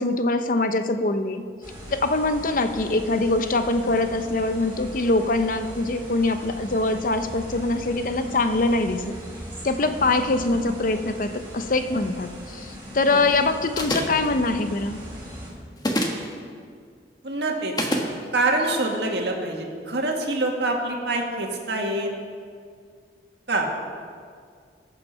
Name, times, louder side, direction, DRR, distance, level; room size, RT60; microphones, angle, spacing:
voice 1, 0.0-1.4 1.9-9.2 9.6-15.0, left 2 dB, 50° left, 8 dB, 0.7 m, -23 dB
sound 1, 1.6-15.5, equal, 15° right, 3.6 m, -39 dB
sound 2, 13.8-14.3 15.8-16.3 17.8-18.1, equal, 25° left, 1.3 m, -25 dB
voice 2, 17.2-17.9 18.3-22.1 23.5-23.7, right 2 dB, 75° right, 1 dB, 1.9 m, -25 dB
19.0 x 7.2 x 5.7 m, 2.1 s
head